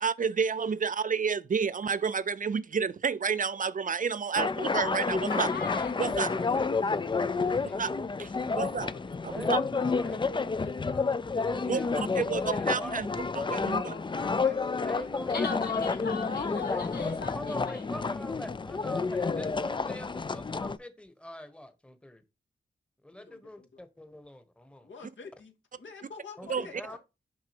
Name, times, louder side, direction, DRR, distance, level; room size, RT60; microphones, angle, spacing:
voice 1, 0.0-5.5 6.0-6.3 7.8-7.9 8.2-8.3 8.5-8.9 9.2-9.6 11.7-13.9 26.5-26.7, right 6 dB, 45° right, 0.4 m, -30 dB
sound 1, 4.3-20.8, left 4 dB, 25° left, 0.4 m, -30 dB
voice 2, 5.3-5.9 15.3-17.8, left 6 dB, 60° left, 0.7 m, -37 dB
voice 3, 6.0-8.0 8.8-9.1 9.4-11.2 13.5-15.7 16.3-17.1 23.2-23.8 24.8-27.0, left 4 dB, 85° left, 2.0 m, -47 dB
voice 4, 9.3-10.2 11.4-13.3 14.8-15.6 16.5-22.2 23.0-24.9 26.4-27.0, left 1 dB, 5° left, 1.0 m, -43 dB
6.1 x 5.8 x 2.8 m
wide cardioid pair, 115°, 19 cm